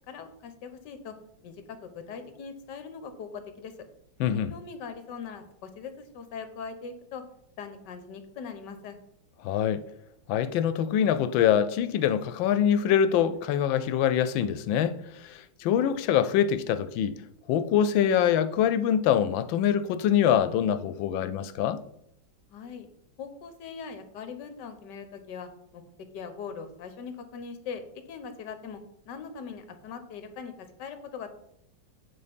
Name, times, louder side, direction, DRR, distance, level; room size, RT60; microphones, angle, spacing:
voice 1, 0.1-1.1 1.4-3.7 4.5-7.2 7.6-9.0 22.5-22.9 23.2-25.8 26.1-27.8 28.1-30.5 30.8-31.3, left 6 dB, 70° left, 1.5 m, -41 dB
voice 2, 4.2-4.5 9.4-9.8 10.3-17.1 17.5-21.8, left 9 dB, 90° left, 1.4 m, -24 dB
8.9 x 4.1 x 5.2 m
omnidirectional pair, 2.0 m